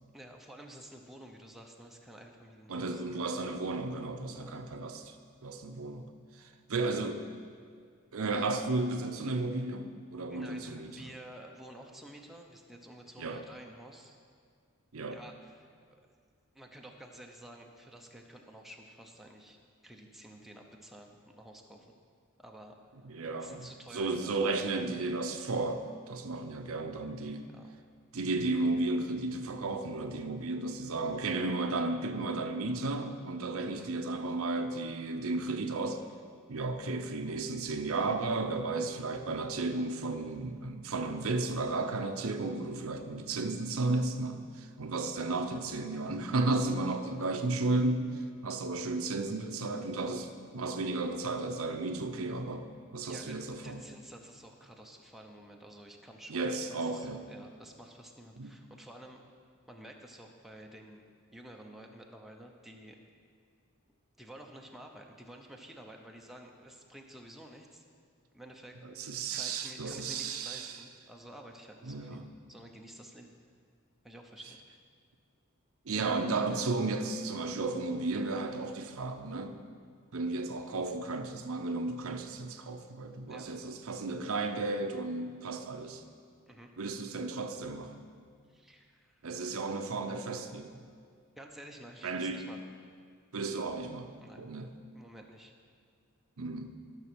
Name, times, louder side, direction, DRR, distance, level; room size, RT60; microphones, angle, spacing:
voice 1, 0.1-3.0 4.3-4.6 10.3-14.2 15.1-15.8 16.5-21.9 22.4-22.8 23.4-24.5 27.5-27.7 33.8-33.9 53.0-53.3 53.6-59.2 59.7-61.0 61.3-63.0 64.2-67.8 68.3-68.8 69.3-72.2 72.5-73.4 74.0-74.6 83.3-83.5 86.5-86.7 88.5-89.3 91.4-92.6 94.2-94.4 94.9-95.5, right 1 dB, ahead, 1 dB, 0.7 m, -51 dB
voice 2, 2.7-5.1 5.4-6.1 6.4-7.3 8.1-11.1 13.2-13.4 14.9-15.2 23.1-27.5 28.1-36.0 36.5-48.1 48.4-52.7 52.9-53.8 56.3-57.2 58.4-58.5 69.0-70.8 71.9-72.3 75.9-79.6 80.1-86.0 86.8-88.0 89.2-90.7 92.0-92.5 93.3-94.7 96.4-96.7, right 3 dB, 70° right, 7 dB, 0.7 m, -34 dB
13.0 x 6.1 x 6.2 m, 2.1 s
head